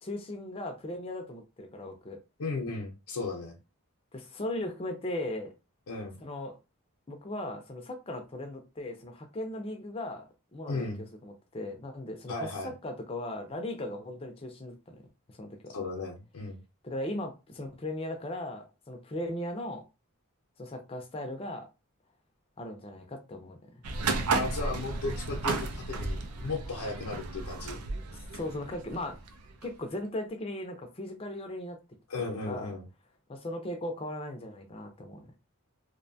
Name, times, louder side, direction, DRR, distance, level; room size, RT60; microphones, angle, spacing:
voice 1, 0.0-2.2 4.1-5.5 6.2-6.6 7.1-10.9 11.2-15.0 15.3-15.7 16.8-19.8 20.6-21.7 22.6-23.6 28.3-29.2 29.6-31.8 32.4-32.7 33.3-35.3, left 1 dB, 25° left, 0.4 m, -38 dB
voice 2, 2.4-3.6 5.9-6.2 10.7-11.1 12.3-12.7 15.7-16.6 24.3-27.8 32.1-32.8, left 3 dB, 85° left, 0.6 m, -35 dB
sound 1, 23.8-29.7, right 3 dB, 80° right, 0.4 m, -34 dB
2.6 x 2.2 x 2.6 m
head